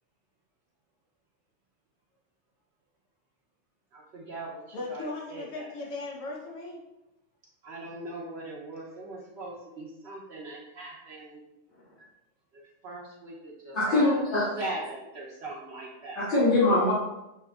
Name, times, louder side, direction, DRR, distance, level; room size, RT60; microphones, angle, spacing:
voice 1, 3.9-4.5 4.9-5.7 7.6-11.4 12.8-14.2 14.6-16.3, right 2 dB, 60° right, -3 dB, 1.0 m, -40 dB
voice 2, 4.7-6.8, left 2 dB, 85° left, -3 dB, 1.2 m, -37 dB
voice 3, 13.7-14.7 16.1-16.9, left 2 dB, 65° left, -15 dB, 2.1 m, -23 dB
6.7 x 2.9 x 2.3 m, 0.93 s
omnidirectional pair, 1.3 m